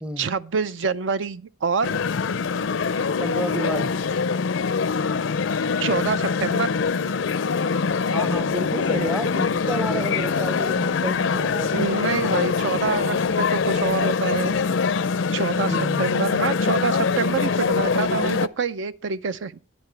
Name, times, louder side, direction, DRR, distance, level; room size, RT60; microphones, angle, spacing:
voice 1, 0.2-2.0 5.8-6.7 11.7-14.6 15.3-19.5, right 5 dB, 70° right, 0.5 m, -26 dB
sound 1, 1.8-18.5, left 5 dB, 80° left, 0.5 m, -23 dB
voice 2, 3.2-4.0 8.1-11.7 15.7-16.1, right 1 dB, 5° right, 0.6 m, -30 dB
10.5 x 9.7 x 3.3 m
head